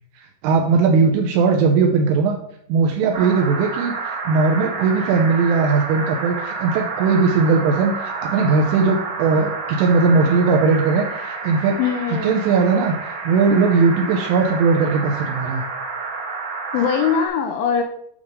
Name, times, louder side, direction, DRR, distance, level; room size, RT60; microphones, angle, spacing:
voice 1, 0.2-2.4 2.7-11.8 12.2-15.6, right 4 dB, 85° right, 1 dB, 3.3 m, -18 dB
sound 1, 3.1-17.3, right 4 dB, 60° right, 2.1 m, -29 dB
voice 2, 11.8-12.5 16.7-17.8, left 7 dB, 80° left, 4 dB, 2.9 m, -21 dB
8.9 x 3.6 x 6.5 m, 0.71 s
omnidirectional pair, 5.6 m